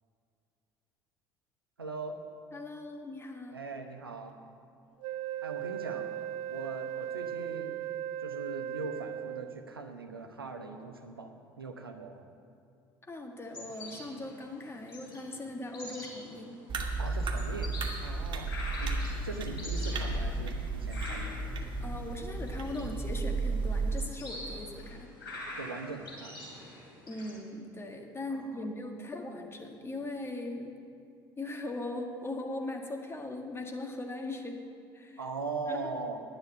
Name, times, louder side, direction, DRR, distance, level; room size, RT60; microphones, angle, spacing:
voice 1, 1.8-2.2 3.5-4.4 5.4-6.1 6.5-7.7 8.2-12.3 17.0-17.7 18.0-18.9 19.2-21.4 24.5-24.7 25.6-26.5 28.3-28.7 35.2-36.2, right 3 dB, 90° right, 5 dB, 0.9 m, -40 dB
voice 2, 2.5-3.6 13.1-16.6 21.8-25.1 27.1-30.8 31.4-34.6 34.9-35.2 35.7-35.8, left 2 dB, 20° left, 3 dB, 1.7 m, -39 dB
Wind instrument woodwind instrument, 5.0-9.8, right 11 dB, 60° right, 0.4 m, -37 dB
sound 1, 13.4-27.3, left 1 dB, 80° left, 2.9 m, -45 dB
sound 2, 16.7-24.1, right 3 dB, 45° right, 1.5 m, -33 dB
10.5 x 7.9 x 7.8 m, 2.5 s
figure-of-eight pair, 60°, 12 cm